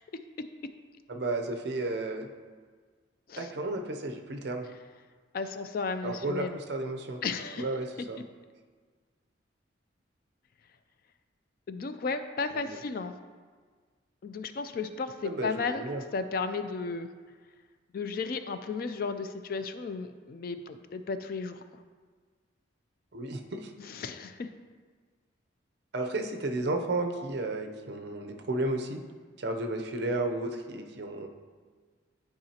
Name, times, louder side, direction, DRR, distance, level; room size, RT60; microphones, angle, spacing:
voice 1, 1.1-2.3 3.4-4.7 6.0-7.2 7.6-8.2 12.5-12.8 15.2-16.0 23.1-23.7 25.9-29.0 29.4-31.3, right 2 dB, 55° right, 5 dB, 0.6 m, -33 dB
voice 2, 5.3-6.6 7.2-7.7 11.7-13.1 14.2-15.9 16.1-17.1 17.9-21.6 23.8-24.5, left 4 dB, 45° left, 10 dB, 0.3 m, -34 dB
10.5 x 4.8 x 2.8 m, 1.5 s
head